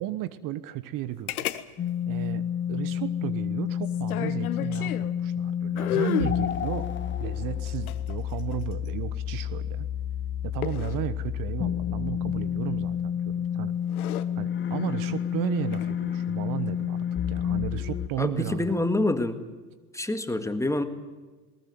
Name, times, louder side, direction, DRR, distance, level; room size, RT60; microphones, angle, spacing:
voice 1, 0.0-1.5 2.1-6.9 7.2-9.9 10.4-13.7 14.1-18.9, right 14 dB, 45° right, 15 dB, 1.2 m, -34 dB
sound 1, 1.3-1.6 1.9-2.0 3.8-5.1 5.8-6.4 7.7-8.9 10.6-11.0 12.9-13.2 13.8-14.3 15.6-15.9, left 13 dB, 75° left, 1.4 m, -32 dB
sound 2, 1.8-18.1, left 9 dB, 25° left, 1.2 m, -30 dB
voice 2, 18.2-19.4 19.9-20.8, left 2 dB, 5° left, 9 dB, 1.8 m, -26 dB
20.0 x 19.5 x 9.4 m, 1.3 s
hypercardioid pair, 90°, 44 cm